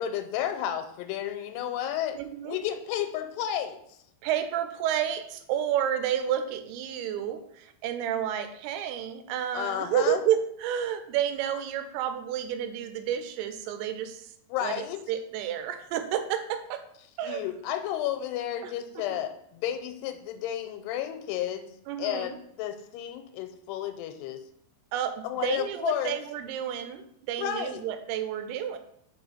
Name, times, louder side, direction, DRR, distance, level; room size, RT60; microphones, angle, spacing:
voice 1, 0.0-2.2 2.4-3.8 9.5-10.2 14.5-15.0 17.2-24.4 25.2-26.2 27.4-27.8, left 10 dB, 90° left, 8 dB, 2.6 m, -32 dB
voice 2, 2.1-2.6 4.2-14.3 14.6-16.8 17.2-17.4 18.6-19.2 21.9-22.4 24.9-28.8, right 10 dB, 85° right, 8 dB, 2.5 m, -30 dB
5.6 x 4.4 x 4.2 m, 0.71 s
omnidirectional pair, 4.6 m